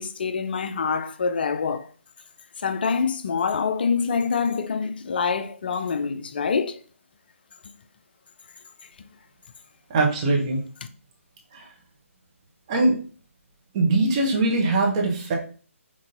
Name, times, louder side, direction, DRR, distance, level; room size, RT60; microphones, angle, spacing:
voice 1, 0.0-1.9 2.6-6.8, left 5 dB, 45° left, 0.4 m, -25 dB
voice 2, 9.9-10.6 11.5-11.6 12.7-13.0 13.7-15.3, right 2 dB, 25° right, 1.0 m, -21 dB
5.2 x 3.4 x 2.6 m
figure-of-eight pair, 140°, 7 cm